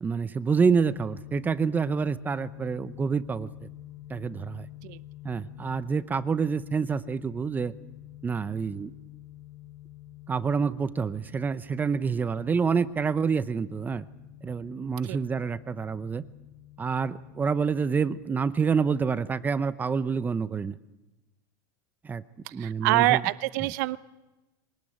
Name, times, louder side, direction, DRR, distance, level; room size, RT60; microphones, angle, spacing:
voice 1, 0.0-3.7 4.1-4.7 5.2-7.7 8.2-8.9 10.3-14.1 14.4-16.2 16.8-20.7 22.0-22.2 22.5-23.2 23.6-23.7, right 5 dB, 15° right, 14 dB, 0.7 m, -27 dB
sound 1, 0.6-19.6, left 14 dB, 70° left, 6.5 m, -47 dB
voice 2, 22.6-24.0, right 18 dB, 70° right, 14 dB, 0.8 m, -25 dB
23.5 x 19.0 x 9.2 m, 1.0 s
supercardioid pair, 135°, 10 cm